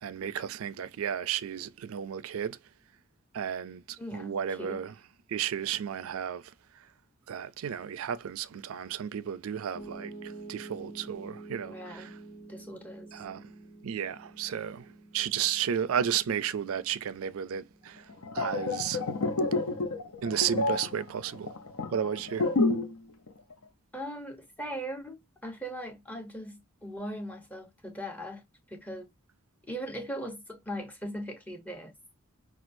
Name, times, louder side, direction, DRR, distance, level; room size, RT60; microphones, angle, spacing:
voice 1, 0.0-2.6 3.3-4.9 5.3-6.4 7.3-12.1 13.1-13.5 13.8-18.1 18.3-19.0 20.2-21.5 21.9-22.5, right 9 dB, 75° right, 0.4 m, -33 dB
voice 2, 4.0-4.9 11.6-12.1 12.5-13.1 23.9-28.4 28.7-29.1 29.6-31.9, equal, 5° left, 0.8 m, -39 dB
Piano, 9.7-21.9, right 3 dB, 55° left, 1.6 m, -49 dB
sound 1, 18.1-23.0 23.3-23.5, left 3 dB, 90° left, 0.7 m, -29 dB
5.9 x 2.4 x 2.6 m
head